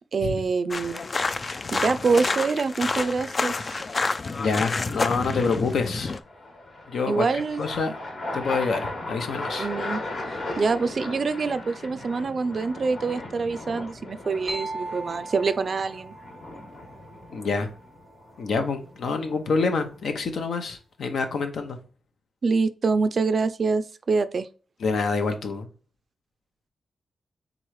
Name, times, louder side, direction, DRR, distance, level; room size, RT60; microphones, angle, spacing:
voice 1, 0.1-1.0 1.7-3.8 7.1-7.6 9.6-10.0 10.6-16.1 22.4-24.5, right 4 dB, 50° right, 0.4 m, -25 dB
sound 1, 0.7-6.2, left 3 dB, 35° left, 0.3 m, -28 dB
sound 2, 1.3-1.8 5.6-20.2, left 2 dB, 50° left, 1.2 m, -37 dB
voice 2, 4.4-6.1 6.9-7.3 7.6-7.9 8.3-9.7 17.3-17.7 18.4-21.8 24.8-25.7, left 4 dB, 70° left, 0.8 m, -27 dB
sound 3, 14.5-18.2, right 2 dB, 15° left, 1.1 m, -39 dB
3.7 x 3.1 x 4.6 m
cardioid pair, 105°, 0 cm